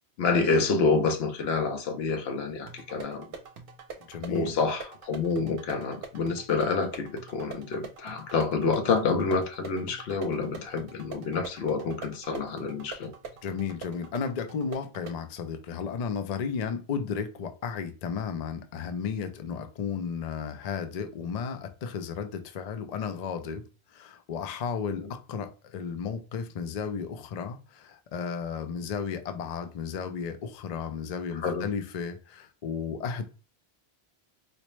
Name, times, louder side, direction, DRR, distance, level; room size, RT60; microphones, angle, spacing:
voice 1, 0.2-3.3 4.3-13.1 25.0-25.1 31.4-31.7, left 4 dB, 75° left, 0.8 m, -28 dB
sound 1, 2.7-15.3, right 5 dB, 65° right, 0.8 m, -44 dB
voice 2, 4.1-4.6 13.4-23.6 23.9-33.2, left 6 dB, 55° left, 0.4 m, -34 dB
4.2 x 2.0 x 3.0 m
omnidirectional pair, 1.1 m